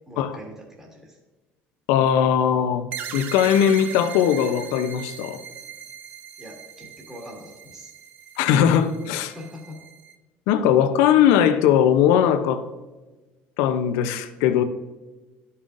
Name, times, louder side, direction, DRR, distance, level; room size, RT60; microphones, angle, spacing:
voice 1, 0.1-1.2 6.4-7.9 9.3-9.8, equal, 10° right, -2 dB, 1.7 m, -42 dB
voice 2, 1.9-5.4 8.4-9.3 10.5-12.6 13.6-14.6, left 9 dB, 80° left, 10 dB, 0.6 m, -19 dB
sound 1, 2.9-10.1, right 8 dB, 50° right, 0.7 m, -39 dB
11.5 x 5.5 x 2.5 m, 1.2 s
cardioid pair, 120°, 4 cm